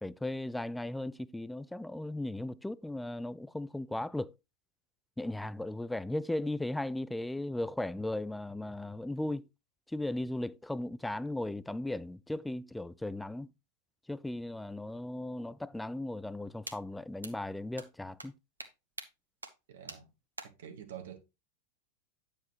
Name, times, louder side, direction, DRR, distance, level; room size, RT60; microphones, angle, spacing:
voice 1, 0.0-4.3 5.2-9.4 9.9-13.5 14.1-18.3, left 1 dB, 5° left, 0.3 m, -36 dB
sound 1, 16.7-16.8 17.2-17.3 17.8-17.9 18.2-18.3 18.6-18.7 19.0-19.1 19.4-19.5 19.9-20.0 20.4-20.5, right 2 dB, 80° right, 1.0 m, -42 dB
voice 2, 19.7-20.1 20.4-21.2, right 9 dB, 60° right, 1.3 m, -47 dB
9.1 x 7.2 x 3.0 m
figure-of-eight pair, 90°, 0 cm